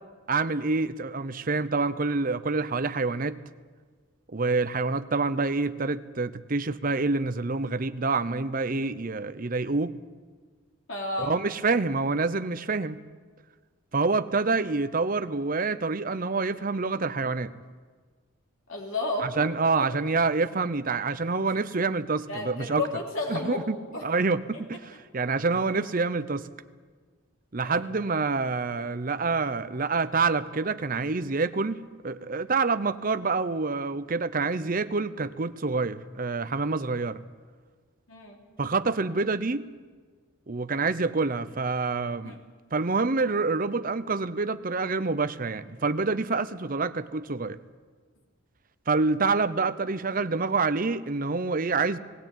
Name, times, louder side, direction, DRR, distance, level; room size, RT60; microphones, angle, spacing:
voice 1, 0.3-3.4 4.3-10.0 11.2-13.0 13.9-17.5 19.2-22.8 23.3-23.8 24.0-26.5 27.5-37.2 38.6-39.7 40.5-42.3 42.7-47.6 48.9-52.0, right 3 dB, 40° right, 0.7 m, -27 dB
voice 2, 10.9-11.4 18.7-19.3 22.3-23.7 23.9-24.0 27.6-27.8 38.1-38.4 42.2-42.4, left 2 dB, 75° left, 3.0 m, -31 dB
19.5 x 16.5 x 9.0 m
head